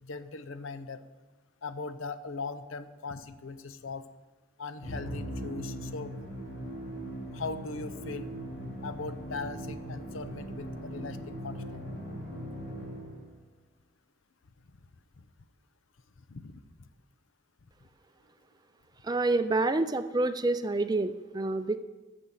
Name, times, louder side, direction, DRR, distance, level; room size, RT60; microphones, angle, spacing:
voice 1, 0.0-1.0 1.6-4.0 4.6-6.1 7.3-8.3 8.8-11.2 11.4-11.8 16.3-16.9, left 4 dB, 85° left, 11 dB, 0.7 m, -39 dB
Musical instrument, 4.8-13.3, equal, 60° left, 3.0 m, -39 dB
voice 2, 19.0-21.8, right 2 dB, 20° right, 11 dB, 0.4 m, -28 dB
10.0 x 6.9 x 7.3 m, 1.2 s
head